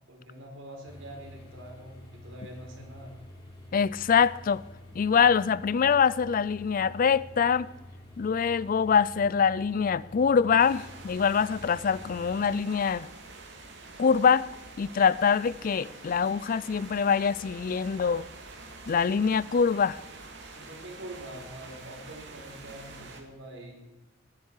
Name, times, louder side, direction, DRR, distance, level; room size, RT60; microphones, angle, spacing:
voice 1, 0.1-3.1 19.0-19.1 20.5-23.8, right 1 dB, 85° right, 4.4 m, -45 dB
sound 1, 0.9-12.5, left 1 dB, 25° left, 4.6 m, -48 dB
voice 2, 3.7-4.6 4.9-7.7 8.2-13.1 14.0-14.5 14.8-18.3 18.9-20.0, left 6 dB, 45° left, 0.4 m, -24 dB
sound 2, 10.6-23.2, right 3 dB, 65° right, 2.3 m, -46 dB
20.5 x 10.5 x 4.8 m
head